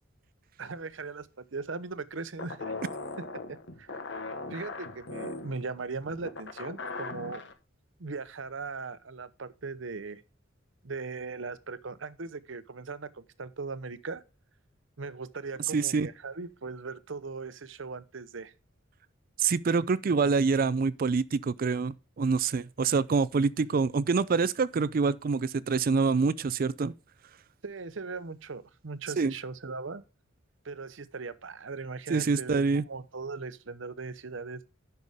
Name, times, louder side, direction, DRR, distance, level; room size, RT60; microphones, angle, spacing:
voice 1, 0.6-2.7 3.2-3.9 4.5-7.4 8.0-10.2 10.8-14.2 15.0-18.5 27.6-30.0 30.6-34.7, right 4 dB, 70° right, 0.8 m, -39 dB
sound 1, 2.4-7.5, left 3 dB, 60° left, 1.3 m, -39 dB
voice 2, 15.7-16.1 19.4-26.9 29.2-29.3 32.1-32.8, right 4 dB, 45° right, 0.4 m, -26 dB
10.5 x 6.8 x 3.6 m
head